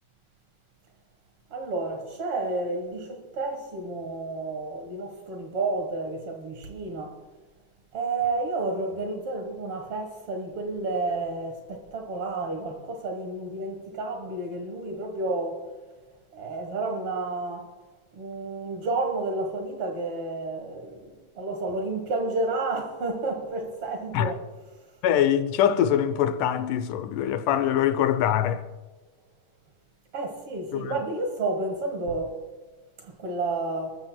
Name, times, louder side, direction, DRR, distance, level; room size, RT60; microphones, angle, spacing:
voice 1, 1.5-7.2 7.9-15.7 16.3-17.7 18.1-21.1 21.4-24.4 30.1-32.4 33.0-34.0, right 2 dB, 55° right, 2.0 m, -31 dB
voice 2, 25.0-28.6 30.7-31.0, left 10 dB, 80° left, 2.1 m, -23 dB
27.5 x 14.0 x 2.2 m
omnidirectional pair, 3.7 m